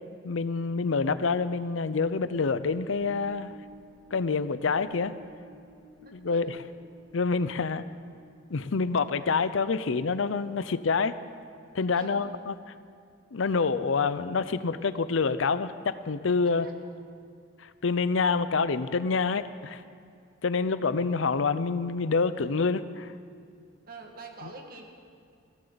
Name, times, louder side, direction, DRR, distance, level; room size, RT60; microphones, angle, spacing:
voice 1, 0.2-3.5 4.1-5.1 6.1-6.6 7.1-7.8 8.5-11.2 11.7-12.5 13.3-16.7 17.6-19.8 20.4-23.1, left 4 dB, 80° left, 13 dB, 0.6 m, -27 dB
sound 1, 2.0-9.6, right 2 dB, 5° left, 3.3 m, -54 dB
voice 2, 6.0-6.4 11.9-12.2 16.6-16.7 23.9-24.9, right 3 dB, 50° right, 2 dB, 1.8 m, -45 dB
21.0 x 16.0 x 4.0 m, 2.3 s
head